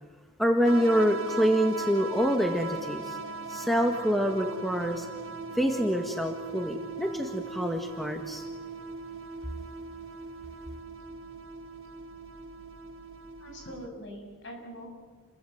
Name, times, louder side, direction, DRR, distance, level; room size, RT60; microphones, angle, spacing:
voice 1, 0.4-3.2 3.5-5.1 5.5-8.4, equal, ahead, 4 dB, 1.6 m, -26 dB
sound 1, 0.6-13.9, right 3 dB, 65° right, 1.6 m, -39 dB
voice 2, 13.4-14.9, equal, 55° left, 2 dB, 7.4 m, -43 dB
29.5 x 23.0 x 7.9 m, 1.5 s
head